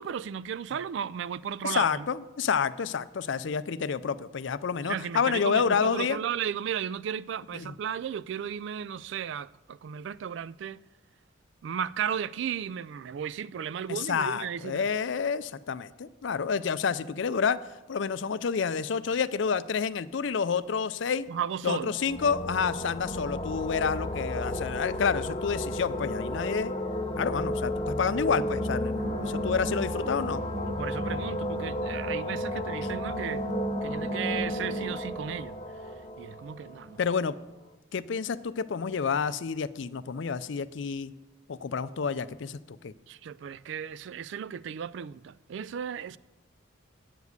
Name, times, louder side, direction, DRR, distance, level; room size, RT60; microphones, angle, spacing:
voice 1, 0.0-2.1 4.9-10.8 11.6-14.8 21.3-21.9 30.8-33.4 33.8-35.5 36.2-37.0 43.1-46.2, right 8 dB, 60° right, 0.3 m, -35 dB
voice 2, 1.6-6.2 7.5-7.7 13.9-17.6 17.9-21.3 21.6-26.7 27.2-30.4 37.0-37.4 37.9-41.1 41.5-42.9, left 6 dB, 65° left, 0.4 m, -29 dB
sound 1, 21.9-37.4, left 1 dB, 25° left, 0.7 m, -33 dB
sound 2, 29.0-34.9, equal, 40° right, 0.9 m, -37 dB
9.1 x 7.3 x 8.1 m
head